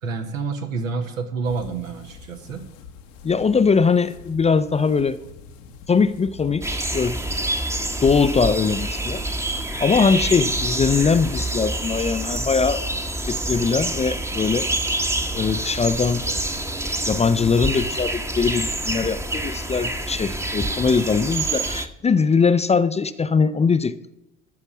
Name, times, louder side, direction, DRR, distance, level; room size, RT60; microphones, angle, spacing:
voice 1, 0.0-2.6, right 4 dB, 80° right, 4 dB, 1.5 m, -28 dB
sound 1, 1.4-21.1, left 6 dB, 70° left, 1.2 m, -46 dB
voice 2, 3.2-5.2 5.9-7.2 8.0-9.2 9.8-12.9 13.3-14.7 15.3-16.3 17.1-24.0, left 5 dB, 15° left, 13 dB, 0.5 m, -21 dB
sound 2, 6.6-21.9, right 1 dB, 5° right, 1.0 m, -27 dB
13.5 x 5.4 x 7.1 m, 0.94 s
figure-of-eight pair, 60°, 39 cm